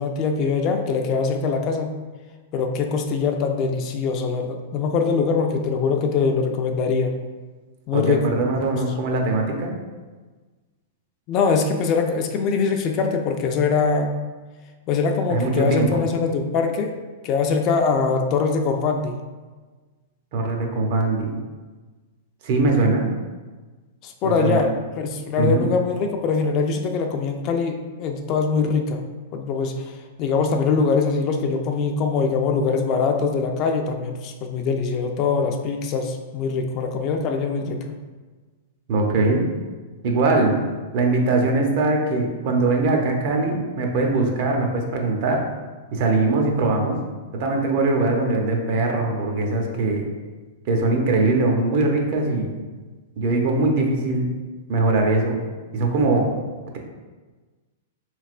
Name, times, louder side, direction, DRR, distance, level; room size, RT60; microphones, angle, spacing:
voice 1, 0.0-1.9 2.5-7.2 7.9-8.4 11.3-14.1 14.9-16.9 17.2-19.2 24.0-24.7 25.0-29.1 29.3-29.9 30.2-37.9, left 5 dB, 35° left, 4 dB, 0.3 m, -22 dB
voice 2, 7.9-9.7 15.3-16.0 20.3-21.4 22.4-23.1 24.2-24.6 25.4-25.7 38.9-39.4 40.0-40.6 40.9-45.4 45.9-47.0 47.3-50.0 50.7-52.6 53.2-54.3 54.7-55.4 55.7-56.3, right 2 dB, 50° right, 2 dB, 0.6 m, -21 dB
3.5 x 3.1 x 2.4 m, 1.3 s
hypercardioid pair, 145°, 0 cm